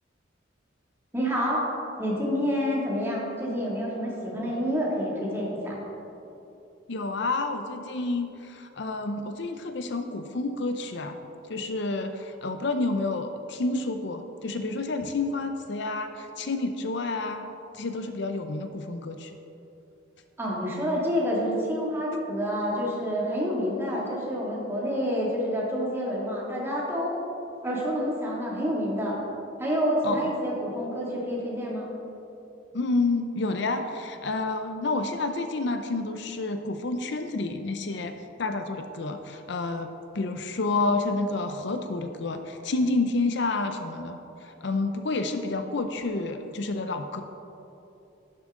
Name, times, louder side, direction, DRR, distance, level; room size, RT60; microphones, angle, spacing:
voice 1, 1.1-1.6 2.0-5.8 20.4-27.2 27.6-29.2 29.6-31.9, equal, 15° right, -5 dB, 2.4 m, -28 dB
voice 2, 6.9-11.2 11.5-17.5 17.7-19.4 30.0-30.4 32.7-39.9 40.1-47.2, left 3 dB, 60° left, 7 dB, 0.6 m, -29 dB
11.5 x 11.0 x 3.8 m, 2.9 s
head